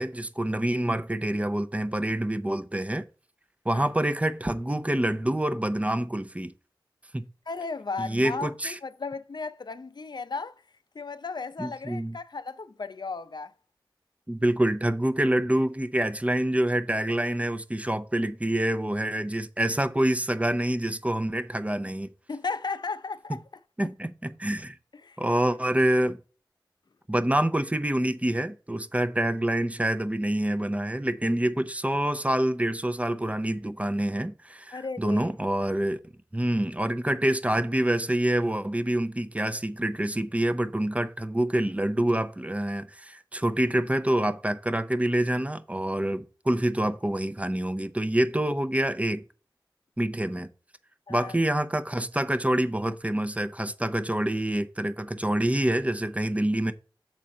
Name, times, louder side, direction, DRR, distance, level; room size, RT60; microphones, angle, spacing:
voice 1, 0.0-3.1 3.6-6.5 7.1-7.2 8.0-8.8 11.6-12.2 14.3-22.1 23.8-24.8 25.2-26.2 27.1-36.0 36.3-49.2 50.0-50.5 51.1-56.7, right 1 dB, 15° right, 0.7 m, -26 dB
voice 2, 7.5-10.5 10.9-13.5 22.3-23.4 25.0-25.2 34.7-35.3 51.1-51.4, left 4 dB, 60° left, 0.6 m, -35 dB
7.5 x 4.2 x 5.2 m
wide cardioid pair, 55°, 8 cm